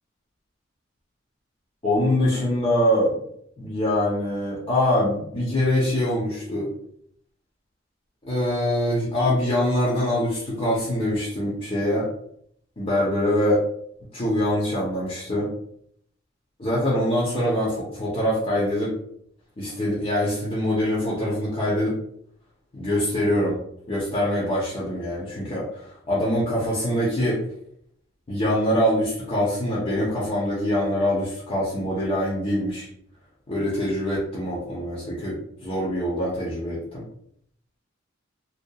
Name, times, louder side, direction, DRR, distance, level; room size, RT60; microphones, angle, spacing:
voice 1, 1.8-3.2 3.6-6.7 8.2-12.1 12.8-13.6 14.1-15.5 16.6-18.9 19.6-22.0 22.7-23.6 23.9-27.4 28.3-32.9 33.5-37.0, left 1 dB, 30° left, -7 dB, 0.7 m, -24 dB
2.8 x 2.3 x 2.2 m, 0.69 s
head